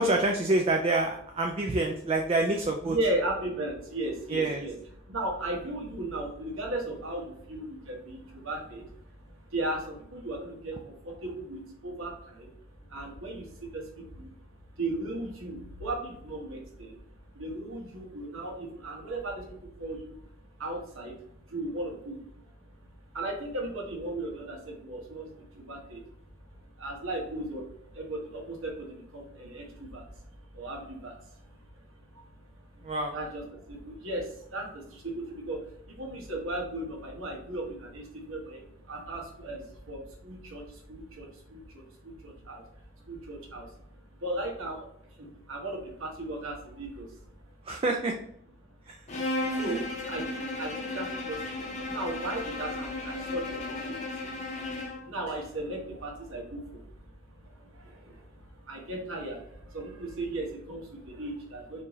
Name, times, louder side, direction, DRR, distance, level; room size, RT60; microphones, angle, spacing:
voice 1, 0.0-3.0 4.3-4.6 32.8-33.1 47.7-48.1 48.9-49.0 49.5-49.8, right 2 dB, 30° right, 2 dB, 0.3 m, -27 dB
voice 2, 2.8-47.8 48.6-61.8, right 1 dB, 85° right, 0 dB, 1.3 m, -37 dB
Bowed string instrument, 49.1-55.1, left 2 dB, 35° left, 0.7 m, -35 dB
4.4 x 2.8 x 3.0 m, 0.67 s
head